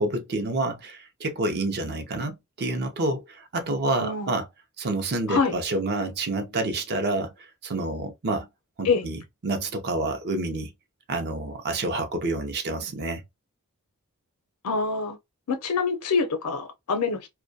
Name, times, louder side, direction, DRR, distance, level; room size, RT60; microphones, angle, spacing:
voice 1, 0.0-4.5 4.8-8.5 8.8-10.7 11.1-13.2, right 2 dB, 50° right, 0.5 m, -28 dB
voice 2, 4.0-4.3 5.3-5.5 8.8-9.1 14.6-15.2 15.5-17.3, left 4 dB, 85° left, 0.6 m, -25 dB
2.2 x 2.2 x 2.6 m
head